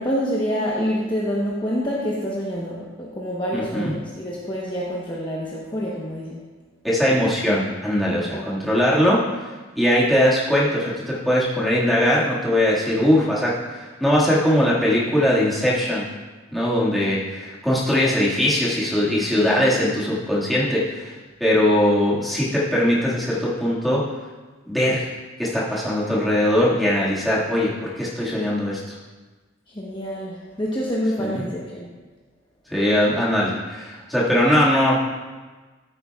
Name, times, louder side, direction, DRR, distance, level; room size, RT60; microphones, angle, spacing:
voice 1, 0.0-6.4 8.2-8.5 29.7-31.9, equal, 25° left, -5 dB, 1.0 m, -27 dB
voice 2, 3.5-3.9 6.8-9.2 9.8-16.1 16.5-24.0 24.7-25.1 25.4-29.0 31.2-31.4 32.7-35.0, left 1 dB, ahead, -8 dB, 1.9 m, -20 dB
14.0 x 8.3 x 2.4 m, 1.3 s
head